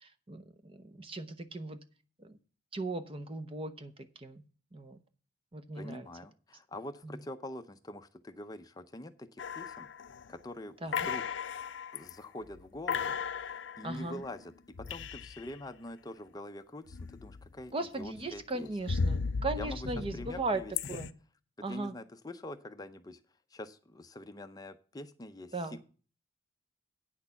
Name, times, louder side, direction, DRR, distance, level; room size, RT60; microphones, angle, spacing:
voice 1, 0.0-1.8 2.2-2.3 2.7-3.9 4.2-4.4 4.7-5.0 5.5-6.1 10.8-10.9 13.8-14.2 17.7-20.6 20.9-21.1 21.6-21.9 25.5-25.8, right 2 dB, 30° right, 10 dB, 0.7 m, -37 dB
voice 2, 5.7-9.9 10.3-11.4 11.9-14.5 14.8-18.7 19.6-20.7 21.6-23.2 23.5-25.8, left 1 dB, 20° left, 8 dB, 0.5 m, -45 dB
sound 1, 9.4-10.4 10.9-12.1 12.5-12.6 12.9-15.6 16.9-17.6 18.0-21.1, left 5 dB, 65° left, 0.5 m, -36 dB
8.9 x 6.5 x 6.9 m, 0.39 s
head